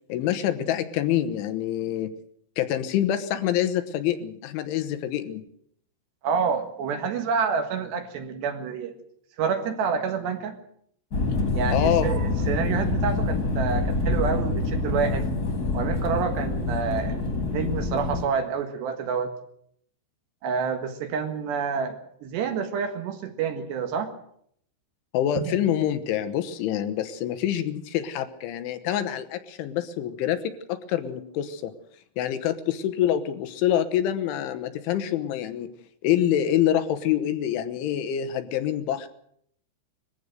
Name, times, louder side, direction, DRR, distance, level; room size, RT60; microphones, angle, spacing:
voice 1, 0.1-2.1 2.6-5.4 11.7-12.1 25.1-31.7 32.2-35.7 36.0-39.1, left 11 dB, 75° left, 9 dB, 3.4 m, -26 dB
voice 2, 6.2-8.9 9.4-10.6 11.5-15.3 15.7-19.3 20.4-24.1 25.4-25.5, right 6 dB, 65° right, 6 dB, 3.5 m, -28 dB
sound 1, 11.1-18.2, left 2 dB, 25° left, 2.3 m, -26 dB
21.5 x 15.0 x 8.0 m, 0.69 s
omnidirectional pair, 5.8 m